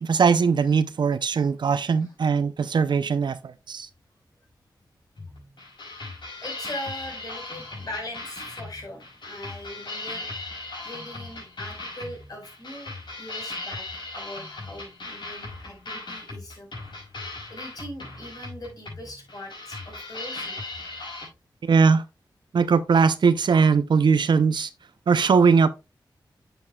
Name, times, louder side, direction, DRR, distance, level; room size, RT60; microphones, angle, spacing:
voice 1, 0.0-3.9 21.6-22.0 22.5-24.7 25.1-25.7, right 5 dB, 65° right, 0.6 m, -20 dB
sound 1, 5.2-21.3, left 2 dB, 75° left, 5.4 m, -38 dB
voice 2, 6.4-12.9 13.2-13.9 14.1-16.7 17.5-20.6, left 1 dB, 50° left, 4.7 m, -40 dB
9.7 x 7.0 x 2.3 m
wide cardioid pair, 85°, 8 cm